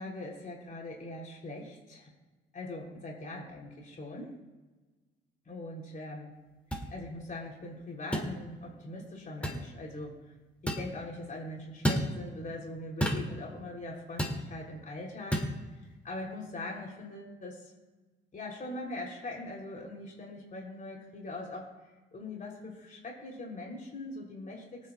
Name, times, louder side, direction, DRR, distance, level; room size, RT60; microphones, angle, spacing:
voice 1, 0.0-2.1 2.5-4.3 5.5-6.3 6.9-10.2 10.6-15.5 16.0-17.7 18.3-21.7 22.1-24.9, left 2 dB, 40° left, -1 dB, 3.6 m, -41 dB
sound 1, 6.7-6.9 8.1-8.3 9.4-9.6 10.7-10.9 11.8-12.1 13.0-13.3 14.2-14.4 15.3-15.5, equal, 5° left, 2.6 m, -29 dB
24.5 x 9.8 x 2.4 m, 1.2 s
cardioid pair, 90°, 20 cm